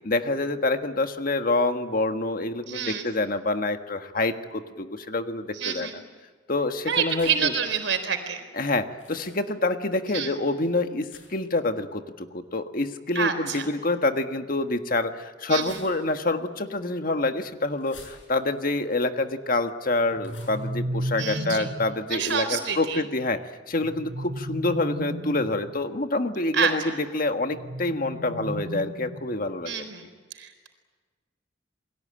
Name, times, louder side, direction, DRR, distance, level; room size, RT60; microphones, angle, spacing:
voice 1, 0.0-5.9 6.5-7.5 8.5-23.4 23.7-26.8 27.1-29.8, left 2 dB, 50° left, 7 dB, 1.6 m, -27 dB
voice 2, 2.7-3.1 5.5-6.0 6.8-8.4 10.1-10.4 13.1-13.6 15.5-15.8 21.2-21.7 22.1-23.0 26.5-26.9 29.6-30.1 30.3-30.7, right 7 dB, 80° right, 8 dB, 4.2 m, -28 dB
sound 1, 7.1-7.6 9.0-9.4 11.1-11.5 13.5-13.7 15.5-16.3 17.8-18.6 20.2-20.6 22.2-22.6, left 5 dB, 85° left, 7.3 m, -50 dB
sound 2, 20.1-22.0 23.8-25.7 27.5-29.5, equal, 50° right, 2.2 m, -34 dB
29.0 x 21.5 x 8.9 m, 1.4 s
head